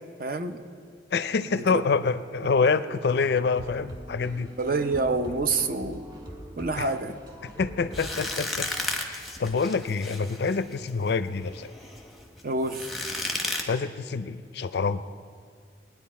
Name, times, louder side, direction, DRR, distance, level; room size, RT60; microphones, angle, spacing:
voice 1, 0.2-0.6 1.5-2.0 2.4-2.5 4.6-6.0 6.6-7.2 12.4-12.9, right 3 dB, 50° right, 8 dB, 0.6 m, -28 dB
voice 2, 1.1-4.5 6.8-6.9 7.6-8.7 9.1-11.7 13.7-15.0, left 4 dB, 60° left, 13 dB, 0.4 m, -26 dB
sound 1, 3.6-8.9, equal, 25° right, 1.4 m, -42 dB
sound 2, 7.9-13.6, left 2 dB, ahead, 1.0 m, -34 dB
20.0 x 9.7 x 4.2 m, 2.1 s
head